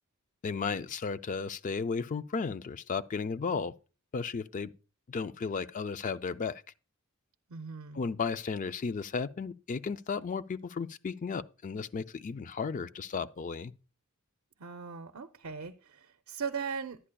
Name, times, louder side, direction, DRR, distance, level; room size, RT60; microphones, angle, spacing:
voice 1, 0.4-3.7 4.1-4.7 5.1-6.6 7.9-13.7, left 5 dB, 35° left, 0.4 m, -34 dB
voice 2, 7.5-8.0 14.6-17.0, right 6 dB, 80° right, 0.5 m, -39 dB
11.0 x 9.8 x 2.2 m
head